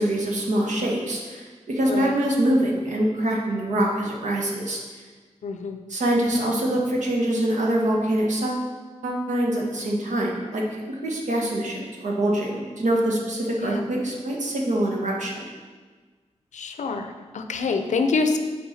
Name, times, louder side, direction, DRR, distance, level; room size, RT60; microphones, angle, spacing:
voice 1, 0.0-4.8 5.9-8.7 9.0-15.4, right 1 dB, 90° right, -1 dB, 1.3 m, -24 dB
voice 2, 1.9-2.2 5.4-5.8 13.6-13.8 16.5-18.4, left 4 dB, 90° left, 6 dB, 0.6 m, -26 dB
8.6 x 4.5 x 4.2 m, 1.4 s
wide cardioid pair, 145°, 12 cm